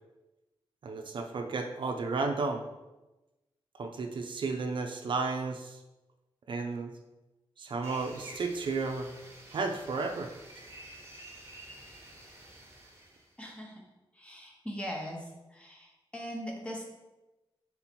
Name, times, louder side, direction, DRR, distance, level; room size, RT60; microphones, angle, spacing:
voice 1, 0.8-2.6 3.8-5.8 6.5-6.9 7.6-9.1 9.5-10.3, right 4 dB, 60° right, 4 dB, 0.4 m, -33 dB
sound 1, 7.8-13.3, right 1 dB, 30° right, 1.1 m, -50 dB
voice 2, 13.4-13.8 14.2-15.2 15.5-15.9 16.1-16.8, equal, 10° left, -1 dB, 0.9 m, -39 dB
3.8 x 2.8 x 4.3 m, 1.1 s
wide cardioid pair, 115°, 10 cm